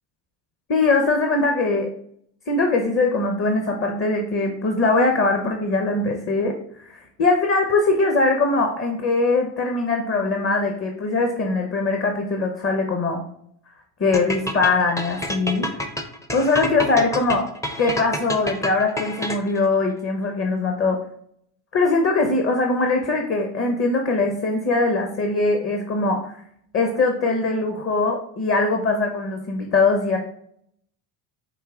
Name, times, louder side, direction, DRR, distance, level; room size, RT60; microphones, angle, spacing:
voice 1, 0.7-1.9 2.5-13.2 14.0-15.9 16.3-17.5 17.8-21.0 21.7-26.3 26.7-30.2, left 3 dB, 30° left, 3 dB, 0.8 m, -21 dB
sound 1, 14.1-19.7, left 1 dB, 5° left, 0.5 m, -28 dB
4.8 x 2.7 x 3.6 m, 0.66 s
supercardioid pair, 85°, 47 cm